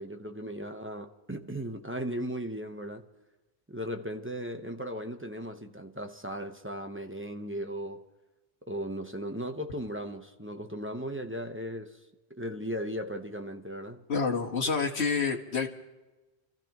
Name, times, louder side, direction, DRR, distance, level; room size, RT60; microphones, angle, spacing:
voice 1, 0.0-3.1 3.7-8.0 8.7-12.0 12.3-14.0, equal, 10° right, 0.9 m, -37 dB
voice 2, 14.1-15.7, left 5 dB, 75° left, 1.7 m, -28 dB
30.0 x 14.5 x 3.0 m
omnidirectional pair, 1.1 m